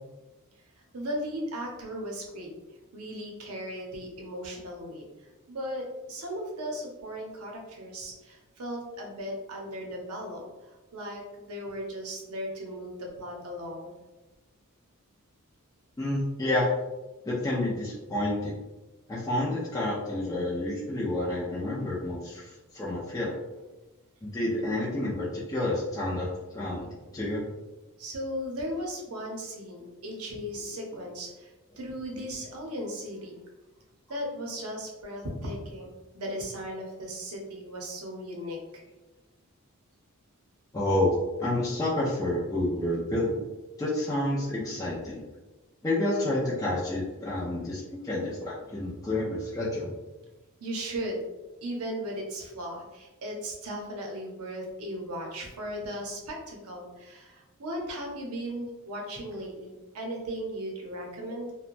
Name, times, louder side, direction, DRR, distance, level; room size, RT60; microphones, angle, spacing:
voice 1, 0.9-2.5 2.9-13.9 28.0-33.4 34.1-38.8 50.6-51.2 51.6-61.5, equal, 75° right, 0 dB, 0.7 m, -37 dB
voice 2, 16.0-16.7 17.2-18.6 19.1-23.3 24.2-27.4 40.7-41.1 41.4-43.4 43.8-45.2 45.8-50.0, left 1 dB, 15° left, -8 dB, 0.4 m, -29 dB
2.9 x 2.1 x 2.5 m, 1.1 s
head